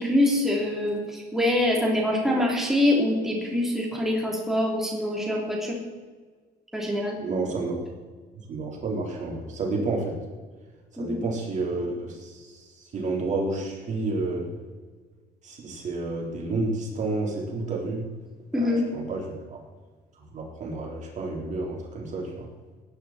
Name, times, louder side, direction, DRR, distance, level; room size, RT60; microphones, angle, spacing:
voice 1, 0.0-5.8 6.7-7.2 11.0-11.2 18.5-18.8, left 1 dB, ahead, -2 dB, 3.4 m, -24 dB
voice 2, 7.2-7.8 8.5-10.2 10.9-14.5 15.4-18.1 18.5-19.6 20.2-22.5, right 3 dB, 45° right, -2 dB, 4.0 m, -30 dB
19.0 x 10.5 x 4.4 m, 1.4 s
cardioid pair, 110°, 17 cm